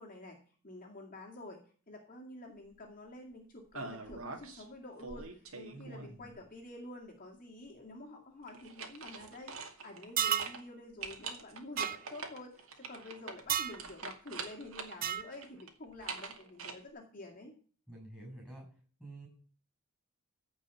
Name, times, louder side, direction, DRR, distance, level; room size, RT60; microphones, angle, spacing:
voice 1, 0.0-17.5, left 2 dB, 40° left, 0 dB, 2.3 m, -49 dB
sound 1, 3.7-4.6 5.0-6.3 8.5-10.1 10.4-10.6 11.0-15.0 15.3-16.7, right 4 dB, 65° right, 2.3 m, -44 dB
voice 2, 5.7-6.4 17.9-18.7 19.0-19.3, right 1 dB, 5° right, 0 dB, 7.7 m, -48 dB
sound 2, 10.2-10.6 11.8-12.0 13.5-13.8 15.0-15.3, right 10 dB, 40° right, 0.6 m, -31 dB
15.5 x 5.5 x 8.3 m, 0.42 s
head